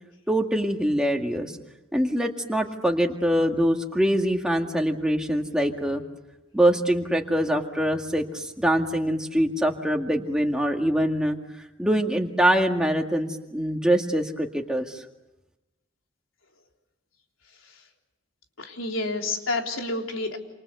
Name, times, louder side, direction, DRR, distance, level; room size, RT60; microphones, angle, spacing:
voice 1, 0.3-1.6 1.9-6.0 6.5-11.4 11.8-15.0, equal, 5° right, 2 dB, 2.0 m, -24 dB
voice 2, 18.6-20.4, left 2 dB, 90° left, 2 dB, 3.8 m, -29 dB
28.5 x 27.5 x 6.9 m, 0.98 s
head